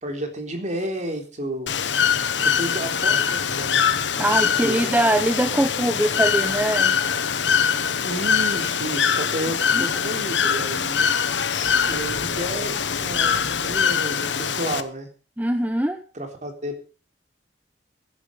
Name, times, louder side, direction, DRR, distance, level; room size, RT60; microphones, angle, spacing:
voice 1, 0.0-1.7 2.6-3.9 4.2-4.9 8.0-11.1 11.9-15.1 16.2-16.7, right 1 dB, 40° right, 4 dB, 3.5 m, -31 dB
Bird / Water, 1.7-14.8, left 7 dB, 85° left, 1.1 m, -23 dB
voice 2, 4.2-6.9 9.7-9.9 15.4-16.0, right 1 dB, 10° right, 7 dB, 0.9 m, -22 dB
sound 1, 11.6-13.8, equal, 45° left, 5.1 m, -43 dB
15.5 x 11.0 x 5.4 m, 0.36 s
head